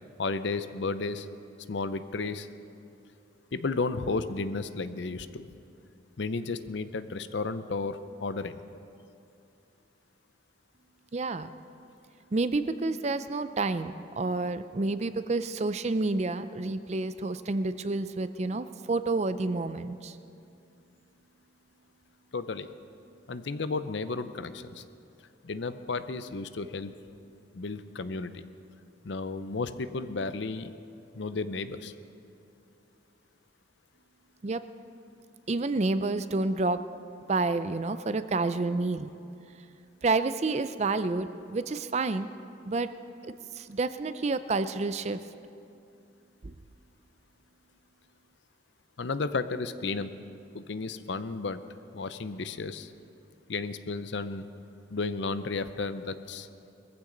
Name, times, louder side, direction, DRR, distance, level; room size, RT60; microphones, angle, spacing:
voice 1, 0.2-1.3 1.7-2.5 3.5-5.5 6.2-8.6 22.3-22.7 23.3-24.8 25.4-26.9 27.5-28.4 29.0-30.7 31.1-31.9 49.0-50.1 50.5-51.6 51.9-52.9 53.5-54.5 54.9-56.5, left 3 dB, 65° left, 12 dB, 0.6 m, -33 dB
voice 2, 11.1-11.5 12.3-20.2 34.4-34.6 35.5-36.8 37.3-39.1 40.0-42.3 42.7-42.9 43.2-45.2 46.4-46.5, right 3 dB, 35° right, 12 dB, 0.4 m, -29 dB
21.5 x 15.0 x 3.9 m, 2.6 s
head